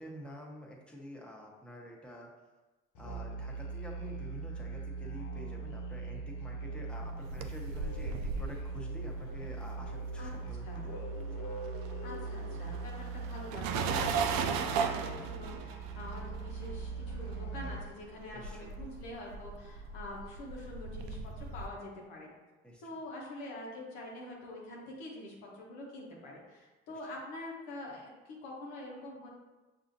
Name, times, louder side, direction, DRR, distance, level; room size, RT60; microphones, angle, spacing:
voice 1, 0.0-2.3 3.0-11.5 18.3-18.7 22.6-22.8, equal, 5° left, -3 dB, 1.1 m, -48 dB
Musical instrument, 2.9-18.0, right 3 dB, 60° left, 0.7 m, -40 dB
sound 1, 7.0-10.7 10.9-21.7, right 5 dB, 75° right, 0.5 m, -37 dB
voice 2, 12.0-22.3 22.8-29.3, left 1 dB, 85° left, -2 dB, 1.0 m, -45 dB
6.1 x 2.7 x 2.7 m, 1.2 s
hypercardioid pair, 55°, 34 cm